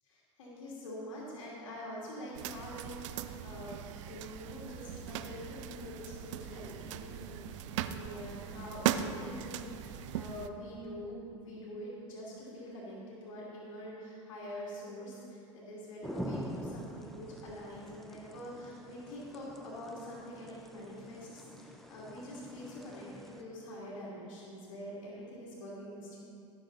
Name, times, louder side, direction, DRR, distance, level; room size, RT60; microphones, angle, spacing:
voice 1, 0.1-26.2, equal, 70° left, -7 dB, 2.9 m, -45 dB
sound 1, 2.3-10.5, right 10 dB, 70° right, 0.6 m, -39 dB
sound 2, 16.0-23.4, equal, ahead, 1.1 m, -45 dB
17.0 x 7.3 x 4.1 m, 2.7 s
hypercardioid pair, 75°, 16 cm